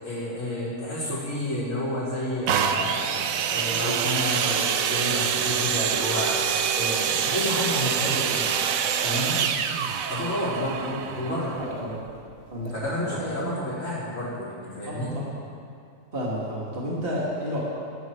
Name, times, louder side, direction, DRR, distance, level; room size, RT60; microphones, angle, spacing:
voice 1, 0.0-3.2 3.5-6.4 6.7-8.4 9.0-9.4 10.1-11.5 12.7-15.1, left 1 dB, 70° left, -14 dB, 5.0 m, -30 dB
sound 1, 2.5-12.2 12.9-13.0, right 8 dB, 90° right, 1.2 m, -26 dB
voice 2, 10.8-12.0 12.5-13.5 14.8-15.3 16.1-17.6, equal, 45° right, -5 dB, 2.5 m, -32 dB
19.5 x 13.0 x 4.6 m, 2.4 s
omnidirectional pair, 1.4 m